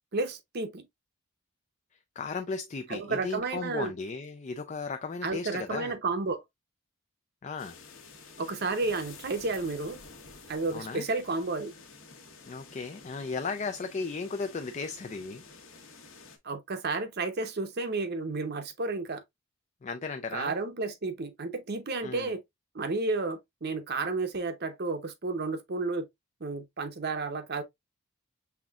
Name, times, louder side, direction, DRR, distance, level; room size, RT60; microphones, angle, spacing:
voice 1, 0.1-0.8 2.9-3.9 5.2-6.4 8.4-10.0 10.5-11.7 16.4-19.2 20.3-22.4 22.7-26.1 26.4-27.6, right 3 dB, 45° right, 0.7 m, -32 dB
voice 2, 2.2-5.9 7.4-7.8 10.7-11.0 12.5-15.4 19.8-20.5 22.0-22.3, left 4 dB, 30° left, 0.4 m, -35 dB
sound 1, 7.6-16.4, left 4 dB, 65° left, 1.2 m, -50 dB
5.8 x 3.5 x 2.3 m
head